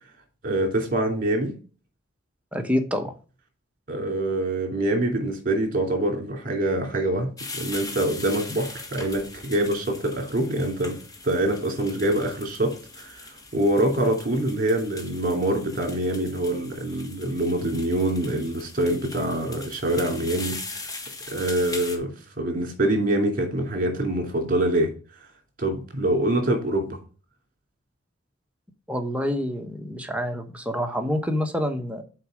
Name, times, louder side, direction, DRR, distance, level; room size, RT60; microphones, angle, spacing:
voice 1, 0.4-1.5 3.9-7.3 7.5-11.0 11.2-20.6 21.3-22.1 22.4-24.9 25.6-27.0, right 1 dB, 45° right, 3 dB, 2.7 m, -25 dB
voice 2, 2.5-3.1 28.9-32.0, equal, 5° right, 4 dB, 1.1 m, -27 dB
sound 1, 7.4-22.0, left 3 dB, 20° left, 1.3 m, -40 dB
6.6 x 4.7 x 6.4 m, 0.37 s
head